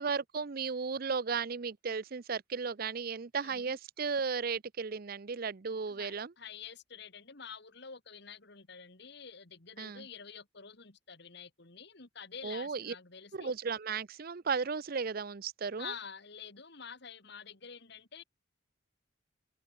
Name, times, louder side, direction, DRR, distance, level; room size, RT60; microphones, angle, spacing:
voice 1, 0.0-6.3 9.8-10.1 12.4-12.9 13.3-15.9, right 5 dB, 45° right, 0.6 m, -35 dB
voice 2, 3.4-3.8 5.9-13.5 15.8-18.2, left 6 dB, 55° left, 2.1 m, -48 dB
head